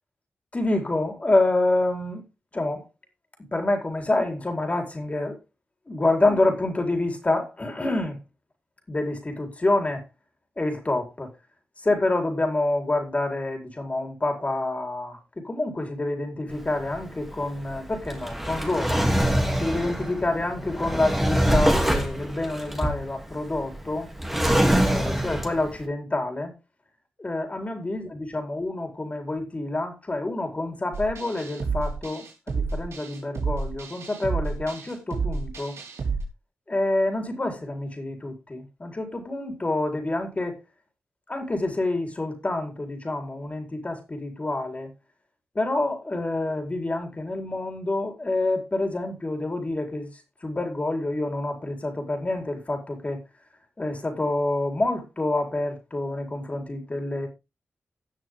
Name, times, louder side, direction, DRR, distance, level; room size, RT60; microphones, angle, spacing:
voice 1, 0.5-2.2 2.5-2.8 3.5-5.4 5.9-8.2 8.9-10.0 10.6-11.3 11.8-19.1 19.6-24.1 24.8-26.5 27.2-35.8 36.7-40.6 41.3-44.9 45.5-50.1 50.4-53.2 53.8-57.3, left 2 dB, 30° left, 4.5 m, -27 dB
Drawer open or close, 16.5-25.8, equal, 5° right, 3.0 m, -25 dB
sound 1, 30.9-36.2, right 4 dB, 80° right, 4.1 m, -30 dB
18.0 x 6.4 x 3.8 m
cardioid pair, 75°, 5 cm